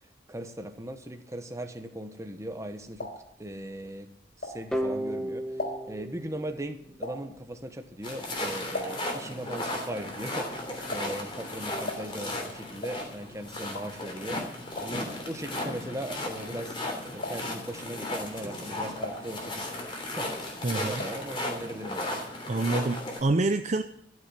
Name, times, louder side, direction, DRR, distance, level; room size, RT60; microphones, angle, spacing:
voice 1, 0.3-3.1 3.4-4.1 4.4-14.4 14.8-19.7 20.1-22.2, right 1 dB, 15° right, 7 dB, 1.2 m, -39 dB
sound 1, 2.6-5.0 5.3-9.3 9.5-16.8 17.1-17.7 18.2-19.9 20.2-21.3 21.6-21.7 21.9-22.0, left 1 dB, 60° left, 4.0 m, -40 dB
sound 2, 4.7-7.5, equal, 5° left, 1.3 m, -34 dB
sound 3, 8.0-23.2, left 1 dB, 30° left, 3.2 m, -35 dB
voice 2, 20.6-21.0 22.5-23.8, right 2 dB, 40° right, 7 dB, 0.6 m, -27 dB
13.5 x 7.2 x 9.5 m, 0.69 s
head